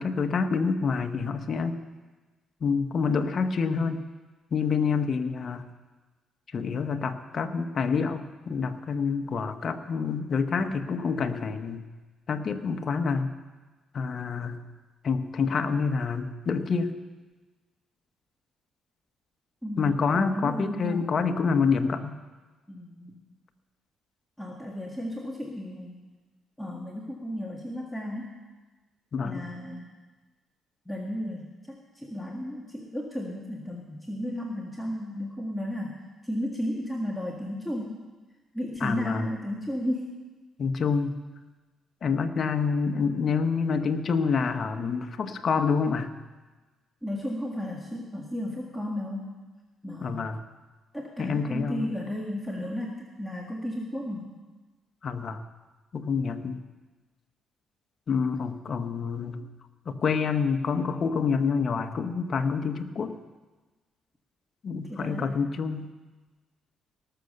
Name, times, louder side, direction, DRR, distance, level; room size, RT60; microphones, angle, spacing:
voice 1, 0.0-1.8 2.6-4.0 4.5-5.7 6.5-11.8 12.3-13.3 13.9-14.6 15.0-16.9 19.8-22.2 29.1-29.4 38.8-39.3 40.6-41.2 42.0-46.1 50.0-50.4 51.2-51.9 55.0-55.4 55.9-56.6 58.1-59.5 59.9-63.1 64.6-65.9, left 5 dB, 50° left, 7 dB, 1.0 m, -27 dB
voice 2, 19.6-21.2 22.7-23.2 24.4-26.0 26.6-28.4 29.2-29.9 30.8-38.0 38.5-40.2 47.0-49.3 49.8-50.3 50.9-54.4 64.9-65.3, left 1 dB, 5° left, -2 dB, 1.7 m, -34 dB
18.5 x 6.9 x 6.7 m, 1.2 s
cardioid pair, 90°, 0 cm